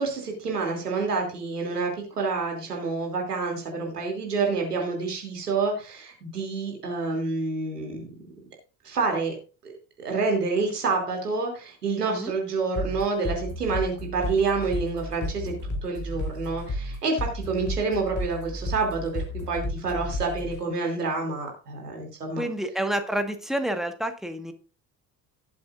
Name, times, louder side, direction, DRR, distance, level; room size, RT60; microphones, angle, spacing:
voice 1, 0.0-8.1 8.8-9.3 9.6-9.7 10.0-22.5, right 4 dB, 80° right, 1 dB, 2.8 m, -28 dB
sound 1, 12.8-20.6, left 1 dB, 40° left, 3.5 m, -32 dB
voice 2, 22.4-24.5, right 1 dB, ahead, 6 dB, 1.5 m, -29 dB
17.5 x 7.7 x 2.5 m, 0.35 s
figure-of-eight pair, 55°, 46 cm